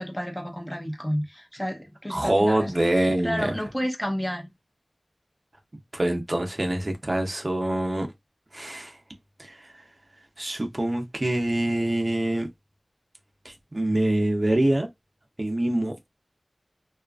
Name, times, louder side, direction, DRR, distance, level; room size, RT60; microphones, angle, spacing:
voice 1, 0.0-2.7 3.2-4.5, equal, 15° left, 0.7 m, -30 dB
voice 2, 2.1-3.5 5.9-8.1 8.5-9.0 9.4-9.7 10.4-12.5 13.4-14.9 15.4-16.0, right 1 dB, 45° right, 0.7 m, -25 dB
2.7 x 2.4 x 2.4 m
wide cardioid pair, 55°, 0 cm